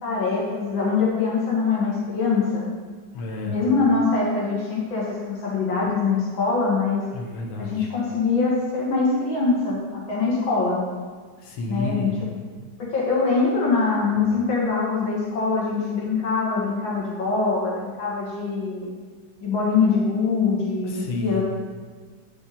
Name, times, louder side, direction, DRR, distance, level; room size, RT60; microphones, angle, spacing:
voice 1, 0.0-2.7 3.4-7.0 7.6-10.8 11.7-12.1 12.8-18.9 19.4-21.4, left 4 dB, 70° left, -4 dB, 2.5 m, -23 dB
voice 2, 3.1-3.6 7.1-7.9 11.4-12.2 20.8-21.4, left 2 dB, 90° left, 1 dB, 1.9 m, -30 dB
8.9 x 5.8 x 4.2 m, 1.5 s
omnidirectional pair, 2.2 m